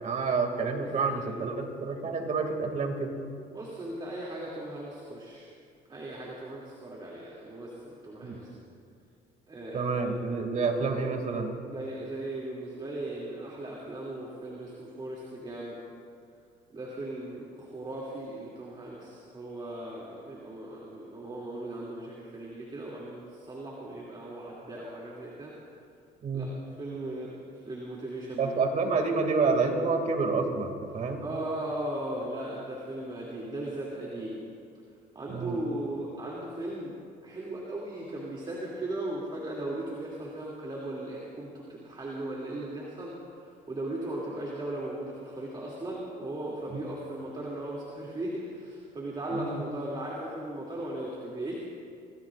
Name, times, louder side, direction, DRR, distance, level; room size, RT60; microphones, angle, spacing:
voice 1, 0.0-3.2 8.2-8.4 9.7-11.5 26.2-26.5 28.4-31.3 35.3-35.6 46.7-46.8 49.3-49.6, right 4 dB, 45° right, 3 dB, 2.5 m, -28 dB
voice 2, 0.8-1.3 3.5-5.5 5.9-8.5 9.5-10.0 11.7-15.8 16.7-25.5 26.3-26.5 26.8-27.4 27.6-28.6 31.2-34.4 35.1-37.0 37.2-43.2 43.4-51.5, right 1 dB, 25° right, -4 dB, 2.8 m, -37 dB
27.0 x 18.0 x 2.6 m, 2.4 s
cardioid pair, 110°, 17 cm